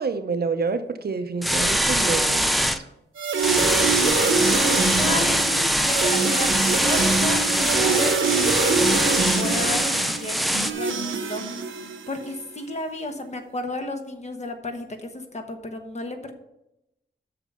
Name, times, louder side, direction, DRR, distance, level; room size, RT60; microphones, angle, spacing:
voice 1, 0.0-2.7, right 4 dB, 55° right, 9 dB, 0.7 m, -28 dB
sound 1, 1.4-2.8 3.4-10.7, equal, ahead, 0.5 m, -23 dB
sound 2, 3.2-12.3, right 4 dB, 85° right, 0.9 m, -25 dB
voice 2, 4.0-8.9 9.1-16.3, left 2 dB, 35° left, 5 dB, 1.1 m, -33 dB
8.0 x 6.4 x 5.5 m, 0.87 s
wide cardioid pair, 165°, 19 cm